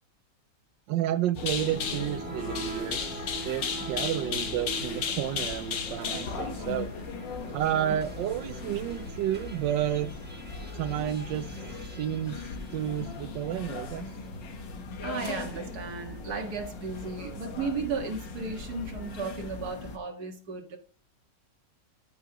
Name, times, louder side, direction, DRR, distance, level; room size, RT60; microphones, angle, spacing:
voice 1, 0.9-3.1 3.4-6.9 7.5-10.1 10.7-14.0, right 11 dB, 85° right, 1.3 m, -31 dB
sound 1, 1.3-13.7, right 2 dB, 5° right, 1.2 m, -43 dB
sound 2, 1.4-20.0, left 5 dB, 80° left, 1.9 m, -37 dB
voice 2, 15.0-20.8, right 4 dB, 60° right, 2.2 m, -35 dB
14.0 x 6.3 x 2.9 m
omnidirectional pair, 1.9 m